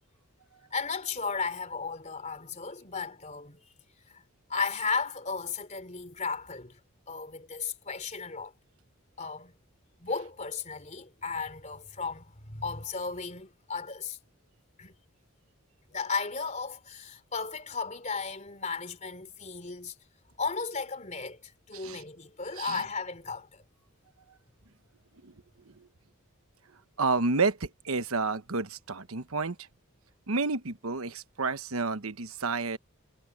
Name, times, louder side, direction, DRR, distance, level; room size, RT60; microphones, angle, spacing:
voice 1, 0.7-3.6 4.1-4.2 4.5-6.8 7.1-8.5 9.2-9.5 10.0-14.2 14.8-14.9 15.9-19.9 20.4-23.6, left 5 dB, 35° left, 3.5 m, -35 dB
voice 2, 27.0-29.5 30.3-32.8, right 4 dB, 90° right, 1.1 m, -30 dB
head